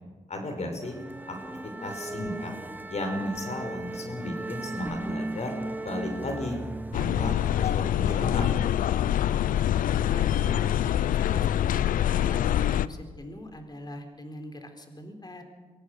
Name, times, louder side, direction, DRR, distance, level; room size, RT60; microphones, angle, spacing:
voice 1, 0.3-1.0 1.3-1.4 1.6-2.5 2.9-5.6 5.8-6.6 6.9-8.4, left 1 dB, 55° left, 4 dB, 5.4 m, -34 dB
sound 1, 0.8-7.3, right 2 dB, 15° right, 1.1 m, -37 dB
sound 2, 6.9-12.9, left 11 dB, 90° left, 0.5 m, -25 dB
voice 2, 9.9-10.7 11.1-15.4, left 1 dB, 30° left, 5 dB, 4.0 m, -43 dB
24.0 x 16.5 x 6.6 m, 1.3 s
cardioid pair, 55°, 14 cm